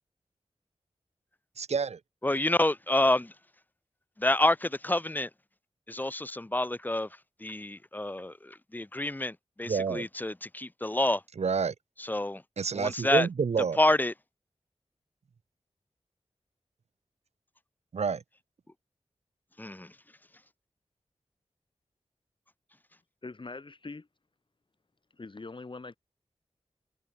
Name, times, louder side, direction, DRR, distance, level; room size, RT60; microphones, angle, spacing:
voice 1, 1.6-2.0 9.6-10.1 11.4-11.7 12.6-13.8 17.9-18.2, right 5 dB, 70° right, 0.8 m, -28 dB
voice 2, 2.2-3.3 4.2-5.3 5.9-7.1 7.4-11.2 12.0-12.4 12.7-13.3 13.8-14.1 19.6-19.9, left 1 dB, 15° left, 0.8 m, -28 dB
voice 3, 23.2-24.1 25.1-26.0, left 3 dB, 45° left, 3.7 m, -42 dB
wide cardioid pair, 70°, 11 cm